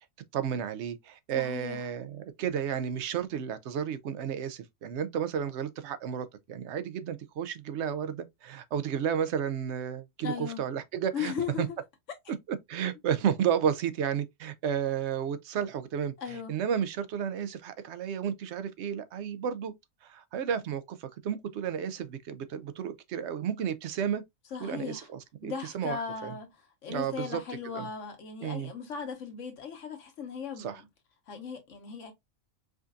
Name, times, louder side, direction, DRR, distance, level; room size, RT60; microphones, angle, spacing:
voice 1, 0.3-11.7 12.5-19.7 20.0-24.2 24.6-26.3 26.9-27.9 28.4-28.7 30.6-30.8, right 8 dB, 65° right, 0.8 m, -32 dB
voice 2, 1.3-1.8 10.2-10.6 11.1-11.7 16.2-16.5 24.5-25.1 25.4-26.5 26.8-30.8 31.3-32.1, left 6 dB, 65° left, 1.4 m, -37 dB
5.0 x 2.6 x 2.3 m
omnidirectional pair, 1.4 m